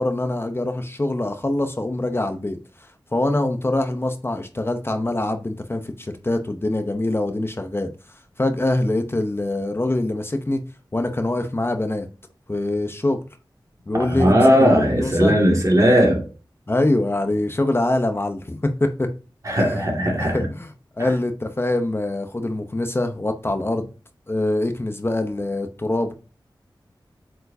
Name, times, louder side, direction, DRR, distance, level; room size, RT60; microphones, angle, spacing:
voice 1, 0.0-2.9 3.1-7.9 8.4-10.6 10.9-12.1 12.5-13.2 13.9-15.3 16.7-19.1 19.6-19.8 20.2-20.7 21.0-23.9 24.3-26.1, left 1 dB, 30° left, 0.7 m, -24 dB
voice 2, 13.9-16.2 19.4-20.5 21.0-21.1, equal, 40° right, 2.1 m, -17 dB
8.1 x 4.6 x 2.7 m
wide cardioid pair, 75°, 8 cm